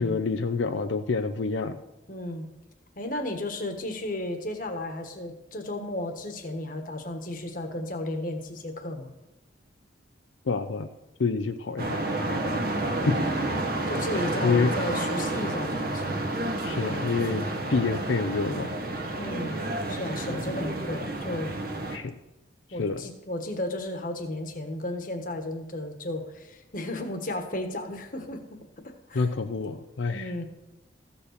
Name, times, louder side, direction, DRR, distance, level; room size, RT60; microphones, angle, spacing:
voice 1, 0.0-1.8 10.4-10.9 11.2-12.1 13.1-13.2 14.4-14.7 16.6-18.7 21.9-22.1 22.8-23.0 29.1-30.3, left 4 dB, 90° left, 7 dB, 0.6 m, -27 dB
voice 2, 2.1-2.5 3.0-9.1 12.9-13.3 13.9-16.2 19.2-19.6 19.9-21.5 22.7-28.6 28.8-29.3 30.1-30.4, left 1 dB, 45° left, 5 dB, 1.4 m, -34 dB
sound 1, 11.8-22.0, right 2 dB, 50° right, 1.2 m, -30 dB
15.0 x 5.4 x 6.5 m, 0.97 s
head